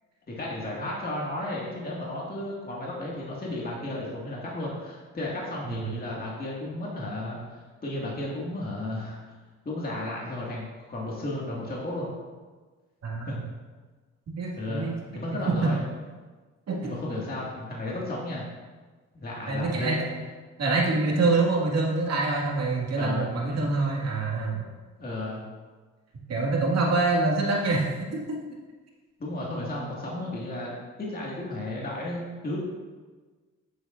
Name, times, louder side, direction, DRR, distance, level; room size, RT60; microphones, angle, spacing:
voice 1, 0.3-9.2 9.7-12.1 13.3-13.4 14.6-15.8 16.8-18.5 19.1-20.1 22.9-23.3 25.0-25.4 29.2-32.6, left 1 dB, 30° left, -5 dB, 2.0 m, -33 dB
voice 2, 13.0-13.3 14.4-15.0 15.5-15.7 16.7-16.8 19.5-20.0 20.6-24.6 26.3-28.4, right 3 dB, 55° right, -2 dB, 2.1 m, -25 dB
10.5 x 7.9 x 2.6 m, 1.4 s
cardioid pair, 90°, 30 cm